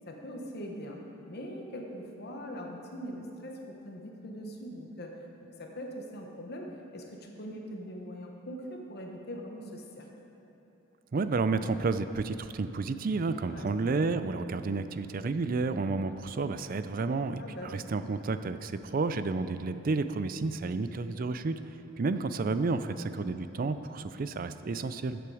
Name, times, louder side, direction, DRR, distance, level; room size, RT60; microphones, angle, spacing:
voice 1, 0.1-1.0 1.3-5.1 5.6-10.1 13.4-13.8 17.4-17.7 21.9-22.1, equal, 50° left, 1 dB, 1.1 m, -42 dB
voice 2, 11.1-21.6 22.0-25.2, right 3 dB, 45° right, 11 dB, 0.4 m, -31 dB
14.0 x 7.8 x 4.9 m, 2.9 s
head